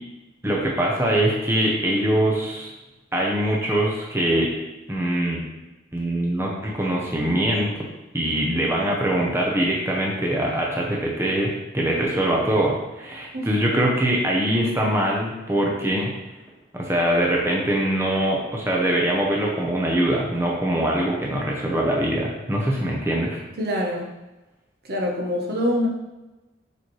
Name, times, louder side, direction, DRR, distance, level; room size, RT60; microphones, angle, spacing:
voice 1, 0.4-2.7 3.1-4.5 4.9-5.4 5.9-7.7 8.1-16.1 16.7-23.4, right 1 dB, 15° right, -3 dB, 0.8 m, -23 dB
voice 2, 13.3-13.7 23.6-24.1 24.9-25.9, left 1 dB, 55° right, 0 dB, 1.1 m, -25 dB
6.8 x 4.5 x 3.2 m, 1.1 s
head